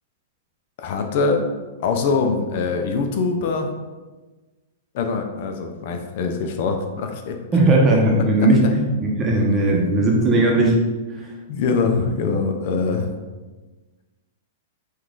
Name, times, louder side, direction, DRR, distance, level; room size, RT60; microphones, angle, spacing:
voice 1, 0.8-1.5 1.8-3.7 4.9-7.4 8.4-8.5 9.8-10.1 11.5-13.2, left 4 dB, 50° left, 5 dB, 0.5 m, -23 dB
voice 2, 7.5-8.9 9.2-10.8 11.1-11.3, right 2 dB, 20° right, -1 dB, 0.8 m, -17 dB
5.2 x 2.5 x 3.8 m, 1.2 s
hypercardioid pair, 150°, 0 cm